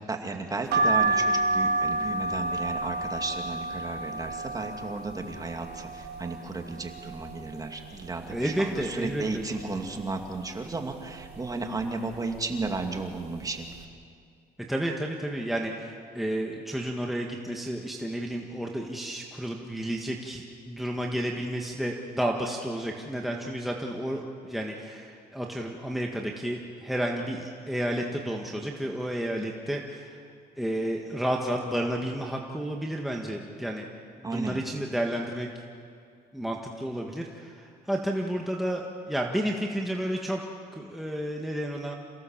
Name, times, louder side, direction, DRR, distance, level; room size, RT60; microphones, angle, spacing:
voice 1, 0.1-13.9 34.2-34.6, right 3 dB, 20° right, 4 dB, 2.4 m, -34 dB
sound 1, 0.7-6.4 6.8-7.6 8.0-8.1 8.3-9.4 9.9-10.3 11.0-11.4 12.1-12.4 12.6-12.8, right 2 dB, 80° right, 2.1 m, -29 dB
voice 2, 8.3-9.4 14.7-25.0 25.3-30.0 30.6-33.9 34.2-35.5 36.3-37.5 37.9-40.4 40.7-42.0, right 1 dB, ahead, 0 dB, 1.6 m, -31 dB
28.5 x 16.5 x 7.3 m, 2.3 s
cardioid pair, 110°, 17 cm